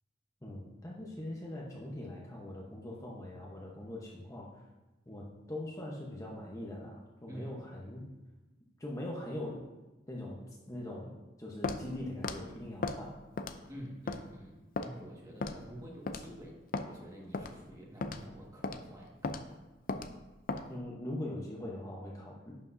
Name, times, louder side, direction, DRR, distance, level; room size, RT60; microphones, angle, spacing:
voice 1, 0.4-4.6 5.1-8.1 8.8-9.6 10.1-13.2 20.7-22.6, left 1 dB, 20° left, -3 dB, 1.0 m, -42 dB
Walk footsteps, 11.6-11.8 12.2-12.4 12.8-13.0 13.4-13.7 14.1-14.2 14.8-14.9 15.4-15.6 16.1-16.3 16.7-16.9 17.3-17.5 18.0-18.2 18.6-18.8 19.2-19.4 19.9-20.1 20.5-20.7, left 3 dB, 50° left, 0.5 m, -35 dB
voice 2, 13.7-19.4, equal, 20° right, -3 dB, 1.7 m, -48 dB
11.0 x 7.2 x 2.7 m, 1.1 s
head